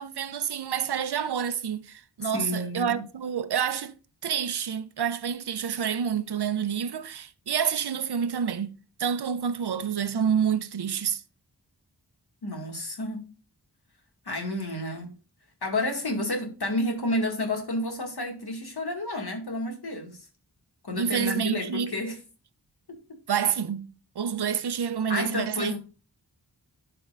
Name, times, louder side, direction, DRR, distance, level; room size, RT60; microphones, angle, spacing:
voice 1, 0.0-3.9 4.2-8.7 9.0-11.2 21.0-21.9 23.3-25.7, right 7 dB, 70° right, 0.7 m, -28 dB
voice 2, 2.2-3.0 12.4-13.2 14.3-15.2 15.6-20.3 20.8-22.2 22.9-23.2 25.1-25.8, left 1 dB, 65° left, 2.1 m, -30 dB
11.5 x 4.5 x 2.5 m
wide cardioid pair, 55°, 41 cm